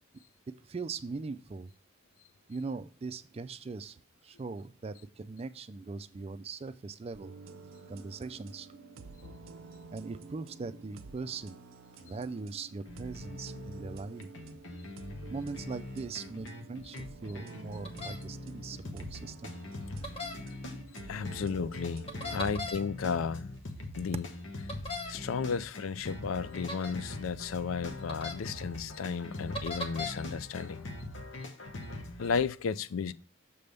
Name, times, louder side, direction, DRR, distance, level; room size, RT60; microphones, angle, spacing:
voice 1, 0.6-1.7 2.5-7.3 7.9-8.7 9.9-11.6 12.0-14.3 15.3-19.5 22.5-22.7, right 4 dB, 30° right, 0.3 m, -40 dB
sound 1, 7.1-22.6, right 4 dB, 80° right, 0.6 m, -50 dB
sound 2, 12.9-32.4, left 1 dB, 65° left, 0.9 m, -43 dB
sound 3, 17.8-18.2 20.0-20.4 22.1-22.8 24.7-25.1 26.7-26.9 28.1-28.3 29.5-30.1, left 2 dB, 30° left, 1.0 m, -37 dB
voice 2, 21.1-23.5 24.0-24.3 25.1-30.9 32.2-33.1, left 6 dB, 80° left, 0.4 m, -33 dB
6.8 x 3.4 x 5.3 m
head